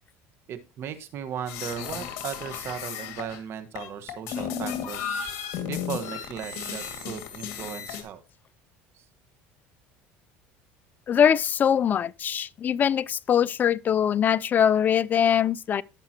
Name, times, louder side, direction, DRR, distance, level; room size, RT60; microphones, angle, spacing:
voice 1, 0.5-5.2 5.7-8.2 8.9-9.0, right 8 dB, 50° right, 1.5 m, -36 dB
sound 1, 1.5-3.4 3.8-8.0, left 8 dB, 65° left, 2.2 m, -34 dB
voice 2, 11.1-15.8, left 8 dB, 35° left, 0.4 m, -22 dB
17.5 x 5.9 x 3.0 m
supercardioid pair, 115°, 5 cm